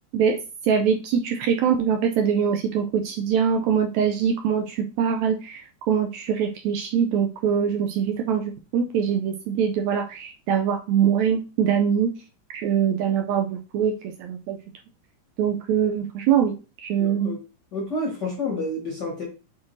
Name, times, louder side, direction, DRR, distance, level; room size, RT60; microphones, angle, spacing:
voice 1, 0.1-12.1 12.5-14.6 15.4-17.3, right 7 dB, 80° right, 4 dB, 1.7 m, -23 dB
voice 2, 17.0-17.4 17.7-19.3, left 2 dB, 50° left, 0 dB, 1.3 m, -29 dB
7.1 x 4.4 x 3.2 m, 0.33 s
omnidirectional pair, 3.6 m